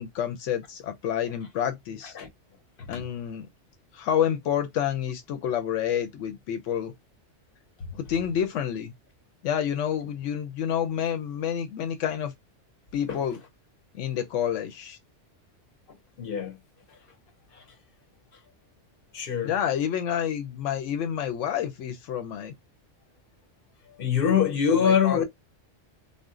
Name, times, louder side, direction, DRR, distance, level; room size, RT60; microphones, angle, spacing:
voice 1, 0.0-2.1 2.9-3.5 3.9-6.9 7.9-8.9 9.4-12.3 12.9-13.4 13.9-15.0 19.4-22.5 24.7-25.2, left 9 dB, 85° left, 1.0 m, -29 dB
voice 2, 16.2-16.6 19.1-19.5 24.0-25.2, left 7 dB, 55° left, 0.8 m, -23 dB
2.5 x 2.1 x 3.5 m
omnidirectional pair, 1.2 m